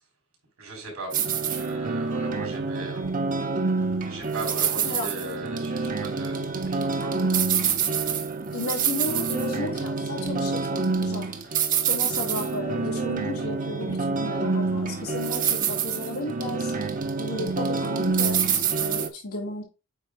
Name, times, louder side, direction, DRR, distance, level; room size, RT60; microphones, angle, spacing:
voice 1, 0.6-1.1 1.4-3.1 4.0-7.5, right 2 dB, 80° right, 2 dB, 3.8 m, -38 dB
sound 1, 1.1-19.1, right 5 dB, 40° right, 0.9 m, -27 dB
voice 2, 8.5-11.3 11.9-16.7 17.2-19.6, left 2 dB, 90° left, -2 dB, 2.9 m, -34 dB
8.2 x 2.7 x 4.9 m, 0.31 s
head